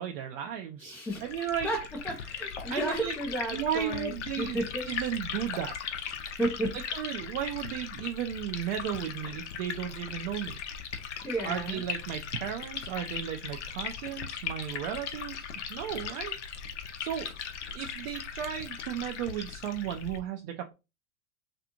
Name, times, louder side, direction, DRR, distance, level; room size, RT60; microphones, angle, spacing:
voice 1, 0.0-1.7 2.7-3.1 3.5-4.6 4.9-6.1 6.9-10.6 11.4-16.3 17.0-20.7, right 9 dB, 55° right, 4 dB, 0.5 m, -35 dB
voice 2, 0.8-4.9 6.4-6.8 7.3-7.4 11.2-11.8, right 1 dB, 5° left, -2 dB, 0.3 m, -33 dB
Liquid, 1.1-20.2, left 7 dB, 75° left, 0.6 m, -38 dB
2.5 x 2.4 x 2.8 m, 0.27 s
hypercardioid pair, 90°, 36 cm